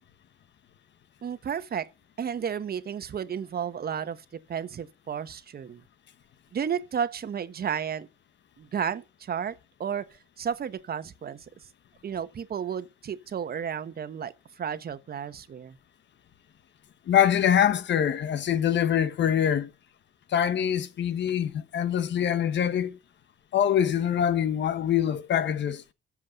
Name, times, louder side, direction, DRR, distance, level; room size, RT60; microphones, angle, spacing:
voice 1, 1.2-1.9 2.2-5.8 6.5-8.1 8.6-9.5 9.8-11.4 12.0-15.8, right 8 dB, 50° right, 1.2 m, -32 dB
voice 2, 17.1-19.7 20.3-23.0 23.5-25.8, left 9 dB, 65° left, 1.2 m, -24 dB
13.5 x 7.4 x 5.2 m
cardioid pair, 90°, 20 cm